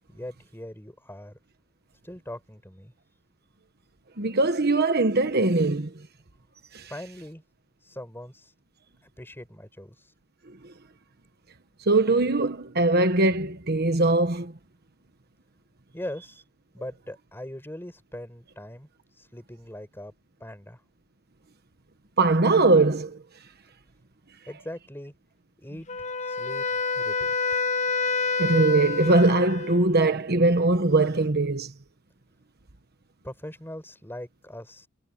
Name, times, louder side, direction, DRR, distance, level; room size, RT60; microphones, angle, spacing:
voice 1, 0.1-1.4 2.0-2.9 6.9-7.4 7.8-8.5 9.0-10.1 15.9-16.4 16.7-18.9 19.2-20.1 20.4-20.8 24.5-25.1 25.6-26.7 26.9-27.3 33.2-34.9, left 1 dB, 10° left, 5.1 m, -41 dB
voice 2, 4.2-5.9 6.7-6.9 11.9-14.5 22.2-23.2 28.4-31.7, right 2 dB, 50° right, 1.3 m, -21 dB
Wind instrument woodwind instrument, 25.9-29.9, left 4 dB, 35° left, 0.8 m, -28 dB
head